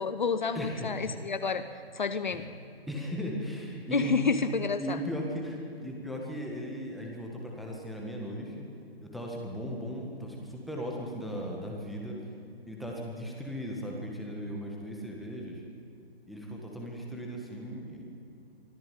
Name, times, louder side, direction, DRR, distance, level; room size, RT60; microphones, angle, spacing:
voice 1, 0.0-2.5 3.9-5.0, left 5 dB, 50° left, 11 dB, 1.0 m, -30 dB
voice 2, 0.5-1.2 2.3-2.4 2.9-4.2 4.8-8.7 9.0-12.2 12.7-15.6 16.3-18.0, equal, ahead, -2 dB, 1.7 m, -37 dB
24.0 x 14.0 x 9.3 m, 2.6 s
figure-of-eight pair, 140°, 31 cm